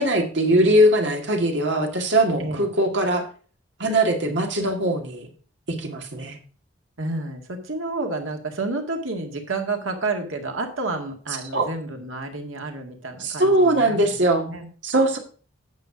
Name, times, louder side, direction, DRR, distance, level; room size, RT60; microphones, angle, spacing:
voice 1, 0.0-3.2 3.8-5.3 5.8-6.4 11.5-11.7 13.2-14.5 14.8-15.2, right 1 dB, 60° right, 3 dB, 2.0 m, -21 dB
voice 2, 7.0-14.1 14.5-14.7, right 3 dB, 85° right, 4 dB, 1.9 m, -30 dB
9.4 x 6.7 x 4.9 m, 0.39 s
head